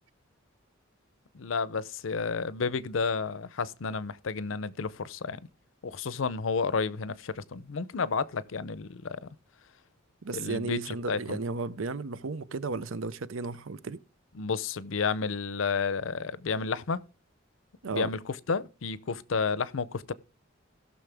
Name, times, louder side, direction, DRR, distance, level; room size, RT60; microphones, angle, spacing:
voice 1, 1.3-5.4 5.8-9.3 10.3-11.4 14.4-17.0 17.9-18.2 18.5-20.1, left 5 dB, 70° left, 0.6 m, -31 dB
voice 2, 10.2-14.0 17.8-18.1, right 3 dB, 80° right, 0.7 m, -34 dB
17.0 x 6.3 x 3.4 m
head